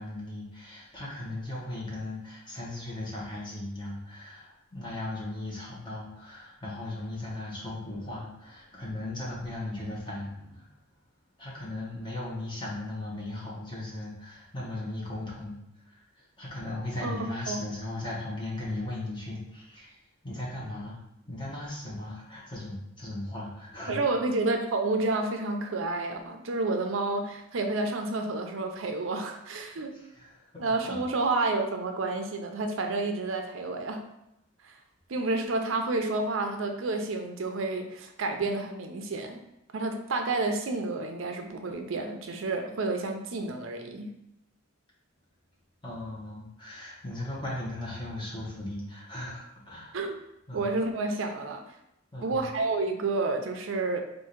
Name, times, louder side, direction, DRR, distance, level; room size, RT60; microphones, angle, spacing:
voice 1, 0.0-10.7 11.4-15.6 15.8-19.9 20.2-21.0 21.3-24.1 29.9-31.0 45.8-50.0 50.5-50.7 52.1-52.4, left 1 dB, 25° left, -5 dB, 1.1 m, -37 dB
voice 2, 17.0-17.6 23.9-29.9 30.6-34.0 34.6-34.7 35.1-39.4 39.7-44.1 49.9-50.1 50.5-51.6 52.2-54.0, right 3 dB, 75° right, 5 dB, 0.5 m, -30 dB
3.6 x 2.6 x 4.4 m, 0.84 s
head